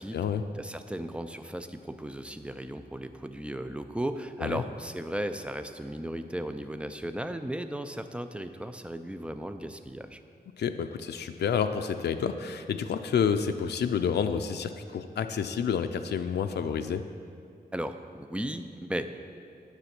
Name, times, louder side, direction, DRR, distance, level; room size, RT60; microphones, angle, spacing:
voice 1, 0.5-10.2 17.7-19.3, right 1 dB, 5° right, 9 dB, 0.4 m, -36 dB
voice 2, 10.6-17.0, left 7 dB, 85° left, 8 dB, 0.4 m, -29 dB
9.8 x 6.2 x 5.9 m, 2.5 s
wide cardioid pair, 110°, 17 cm